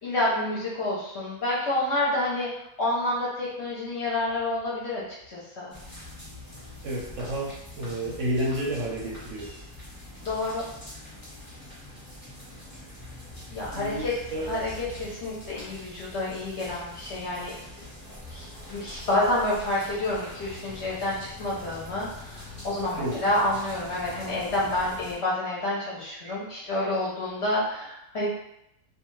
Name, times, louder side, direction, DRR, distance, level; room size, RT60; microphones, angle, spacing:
voice 1, 0.0-5.7 10.2-10.7 13.5-14.1 14.4-17.9 18.3-28.3, left 1 dB, 55° left, -6 dB, 0.8 m, -29 dB
sound 1, 5.7-25.1, left 1 dB, 20° left, 0.9 m, -44 dB
voice 2, 6.8-9.5 13.7-14.5 23.0-23.2, right 1 dB, 65° right, -4 dB, 0.8 m, -30 dB
2.4 x 2.3 x 3.0 m, 0.82 s
omnidirectional pair, 1.6 m